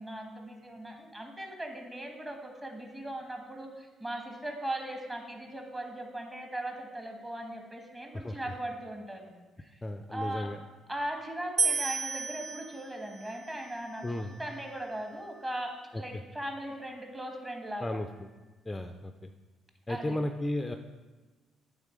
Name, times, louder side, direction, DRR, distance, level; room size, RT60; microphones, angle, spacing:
voice 1, 0.0-9.3 9.6-9.8 10.1-10.5 10.9-18.0 19.9-20.2, right 1 dB, 20° right, 3 dB, 1.4 m, -39 dB
voice 2, 8.1-8.5 9.8-10.6 14.0-14.3 16.1-16.2 17.8-18.3 18.7-19.3 19.9-20.8, left 1 dB, 15° left, 7 dB, 0.4 m, -34 dB
sound 1, 11.6-14.8, right 4 dB, 45° right, 0.5 m, -34 dB
8.8 x 3.8 x 5.0 m, 1.2 s
supercardioid pair, 75°, 0 cm